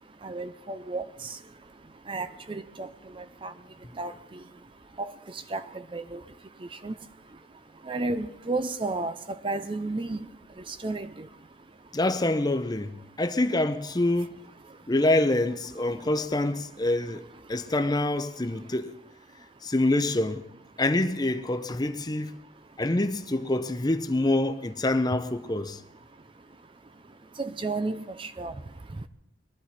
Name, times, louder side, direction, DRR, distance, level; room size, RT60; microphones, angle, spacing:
voice 1, 0.2-1.0 2.1-2.9 3.2-3.5 4.0-4.1 5.0-5.1 5.5-5.6 5.9-6.2 6.8-6.9 7.9-9.1 9.4-10.3 10.8-11.1 27.4-28.5, right 2 dB, 25° right, 0.5 m, -31 dB
voice 2, 11.9-14.4 14.9-17.2 17.5-18.9 19.6-20.5 20.8-22.3 22.8-25.8, left 2 dB, 20° left, 0.6 m, -26 dB
21.5 x 13.0 x 4.3 m
head